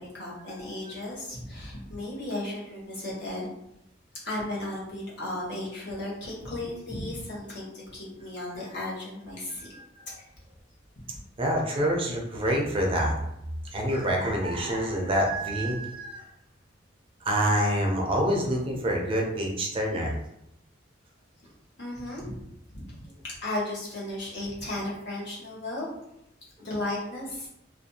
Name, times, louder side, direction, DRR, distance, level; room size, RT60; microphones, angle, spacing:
voice 1, 0.0-3.5 4.2-9.7 21.8-22.3 22.7-25.9 26.6-27.5, left 1 dB, 60° left, -6 dB, 1.0 m, -35 dB
voice 2, 9.6-10.2 11.4-13.1 13.7-16.2 17.2-20.2, equal, 25° right, 0 dB, 0.4 m, -27 dB
2.5 x 2.2 x 2.7 m, 0.81 s
head